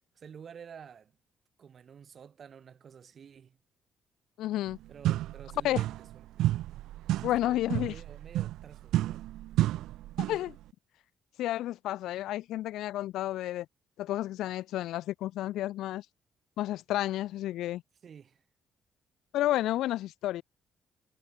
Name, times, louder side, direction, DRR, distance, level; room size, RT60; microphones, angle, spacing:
voice 1, 0.1-1.2 1.6-3.6 4.9-6.5 7.2-9.3 18.0-18.4, right 7 dB, 50° right, 2.5 m, -50 dB
voice 2, 4.4-4.8 5.6-5.8 7.2-7.9 10.3-10.6 11.4-13.7 14.0-16.0 16.6-17.8 19.3-20.4, left 14 dB, 85° left, 0.5 m, -31 dB
sound 1, 4.7-4.8 5.0-6.1 6.4-10.5, right 15 dB, 85° right, 0.4 m, -31 dB
cardioid pair, 90°, 0 cm